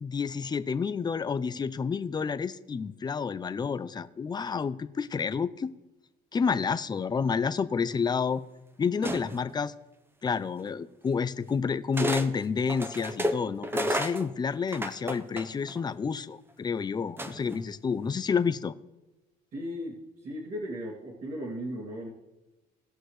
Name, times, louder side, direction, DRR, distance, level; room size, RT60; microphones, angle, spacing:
voice 1, 0.0-5.7 6.3-8.4 8.8-9.7 10.2-18.7, left 5 dB, 25° left, 13 dB, 0.5 m, -29 dB
sound 1, 9.0-9.5 10.7-10.8 11.9-12.3 12.7-15.8 17.2-17.6, equal, 15° right, 0.9 m, -31 dB
voice 2, 19.5-22.1, equal, 55° right, -6 dB, 2.8 m, -36 dB
19.0 x 6.3 x 3.3 m, 1.1 s
cardioid pair, 110°, 17 cm